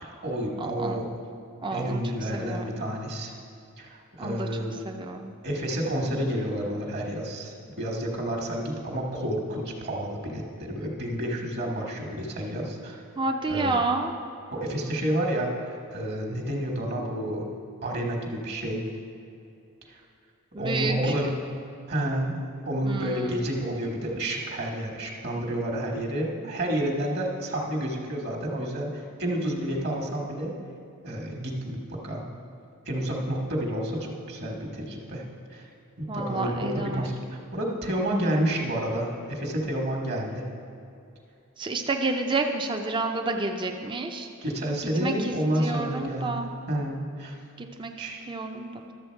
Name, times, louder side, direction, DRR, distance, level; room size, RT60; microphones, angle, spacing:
voice 1, 0.0-1.1 1.7-3.3 3.8-4.8 5.4-13.0 13.5-13.8 14.5-17.5 17.8-18.8 19.9-20.0 20.6-21.3 21.9-30.5 31.0-32.3 32.8-35.2 35.5-35.7 36.0-40.4 44.4-46.4 46.7-47.3 48.0-48.2, right 1 dB, 50° right, 1 dB, 1.4 m, -30 dB
voice 2, 0.6-1.0 1.6-2.0 2.3-2.8 4.2-4.5 4.8-5.3 13.2-14.2 20.5-21.3 22.8-23.4 36.1-37.1 41.6-44.3 45.0-45.3 45.6-46.5 47.6-48.9, right 3 dB, 20° right, 3 dB, 0.5 m, -30 dB
12.0 x 7.2 x 4.5 m, 2.6 s
head